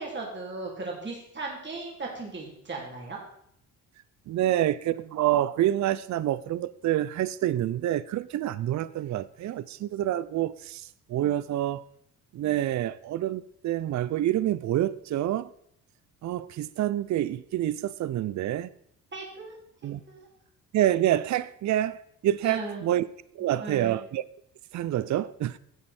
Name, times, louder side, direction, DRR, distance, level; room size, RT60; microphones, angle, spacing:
voice 1, 0.0-3.2 19.1-19.5 19.8-20.3 22.4-22.9 23.6-24.0, right 3 dB, 30° right, 3.1 m, -37 dB
voice 2, 4.3-11.8 12.3-15.5 16.2-18.7 19.8-20.0 20.7-22.0 22.2-23.1 23.3-24.2 24.7-25.6, right 13 dB, 50° right, 0.5 m, -27 dB
10.5 x 7.5 x 4.3 m
supercardioid pair, 75°, 36 cm